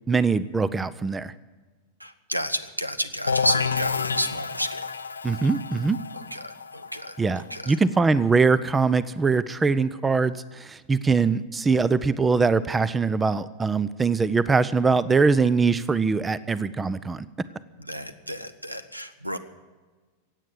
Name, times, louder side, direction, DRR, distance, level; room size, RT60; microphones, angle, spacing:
voice 1, 0.1-1.3 5.2-6.0 7.2-17.3, right 4 dB, 15° right, 18 dB, 0.5 m, -22 dB
voice 2, 2.0-4.9 6.1-7.8 17.8-19.4, equal, 90° right, 13 dB, 0.8 m, -31 dB
sound 1, 3.3-8.8, left 5 dB, 75° left, 0.6 m, -30 dB
16.5 x 8.6 x 9.6 m, 1.3 s
figure-of-eight pair, 90°, 0 cm